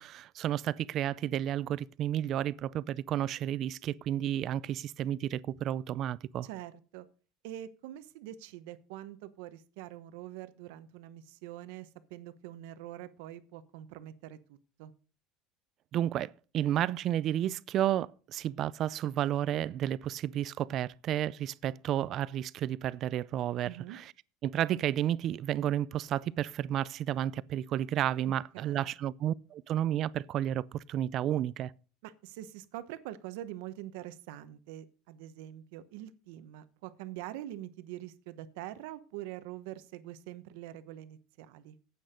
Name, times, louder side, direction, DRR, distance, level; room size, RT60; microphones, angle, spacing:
voice 1, 0.0-6.5 15.9-24.0 24.4-31.7, right 11 dB, 40° right, 0.4 m, -32 dB
voice 2, 6.4-7.1 7.4-14.9 23.6-24.0 28.5-28.9 32.0-41.8, right 13 dB, 80° right, 1.0 m, -44 dB
10.0 x 8.6 x 5.1 m
cardioid pair, 160°, 0 cm